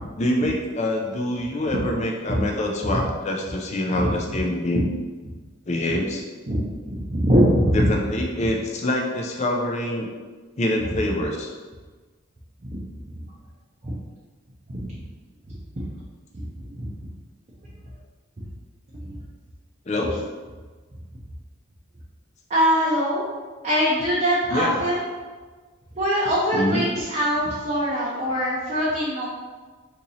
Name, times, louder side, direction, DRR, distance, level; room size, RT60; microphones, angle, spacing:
voice 1, 0.2-4.9 5.7-6.2 7.7-10.1 10.6-11.5 19.9-20.2 24.5-24.7 26.5-26.9, left 1 dB, 30° left, 1 dB, 0.4 m, -25 dB
voice 2, 6.5-7.9 12.6-12.8 13.8-14.0 14.7-14.9 15.8-15.9 16.3-17.1 19.0-19.2 22.5-23.2 23.6-25.0 25.9-29.3, equal, 35° right, -7 dB, 0.5 m, -23 dB
2.8 x 2.7 x 3.9 m, 1.4 s
head